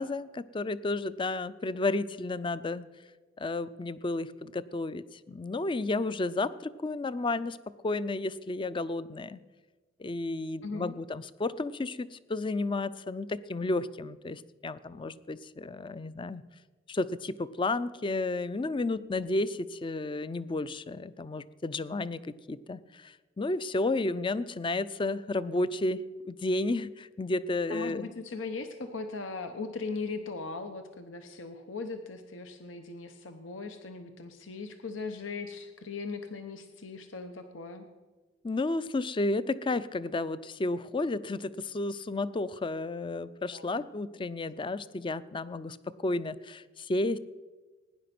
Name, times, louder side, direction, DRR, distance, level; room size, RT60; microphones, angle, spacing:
voice 1, 0.0-2.9 3.4-7.6 7.8-9.4 10.0-16.4 16.9-28.1 38.4-45.8 46.0-47.2, left 2 dB, 25° left, 16 dB, 0.4 m, -32 dB
voice 2, 10.6-11.0 27.7-37.9 43.5-43.8, left 4 dB, 85° left, 7 dB, 1.0 m, -39 dB
17.0 x 10.0 x 6.0 m, 1.3 s
head